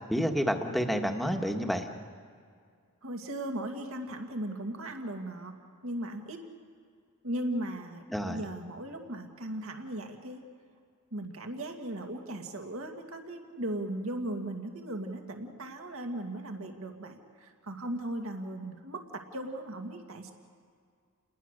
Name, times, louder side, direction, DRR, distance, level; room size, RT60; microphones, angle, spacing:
voice 1, 0.1-1.9 8.1-8.4, equal, ahead, 3 dB, 1.5 m, -29 dB
voice 2, 3.0-5.5 5.8-6.4 7.2-10.4 11.1-20.3, right 1 dB, 70° right, 4 dB, 2.2 m, -37 dB
29.5 x 21.0 x 6.7 m, 2.2 s
head